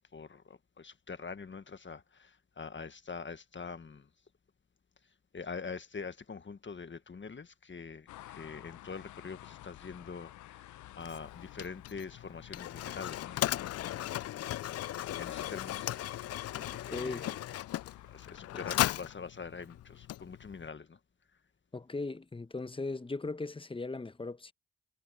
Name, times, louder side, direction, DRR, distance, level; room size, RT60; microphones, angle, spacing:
voice 1, 0.1-4.1 5.3-10.7 11.0-14.1 15.1-17.3 18.1-21.0, left 5 dB, 40° left, 1.6 m, -45 dB
sound 1, 8.1-18.4, left 15 dB, 75° left, 0.9 m, -51 dB
Mechanisms, 11.0-20.7, left 13 dB, 55° left, 0.5 m, -37 dB
voice 2, 16.9-17.3 18.5-18.7 21.7-24.5, left 3 dB, 15° left, 1.1 m, -38 dB
hypercardioid pair, 40°, 30 cm